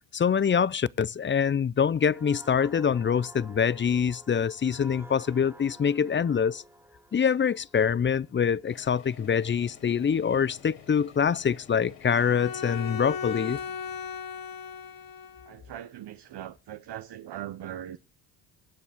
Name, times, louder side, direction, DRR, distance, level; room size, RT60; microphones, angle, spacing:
voice 1, 0.1-6.6 7.1-13.6, left 7 dB, 25° left, 0.6 m, -25 dB
sound 1, 2.0-9.4 9.8-10.1, right 1 dB, 5° right, 2.2 m, -52 dB
sound 2, 8.7-15.6, left 7 dB, 90° left, 6.5 m, -51 dB
Bowed string instrument, 12.1-15.6, left 6 dB, 45° left, 1.2 m, -37 dB
voice 2, 15.5-18.0, right 11 dB, 55° right, 1.2 m, -40 dB
24.0 x 8.3 x 3.6 m
hypercardioid pair, 55°, 48 cm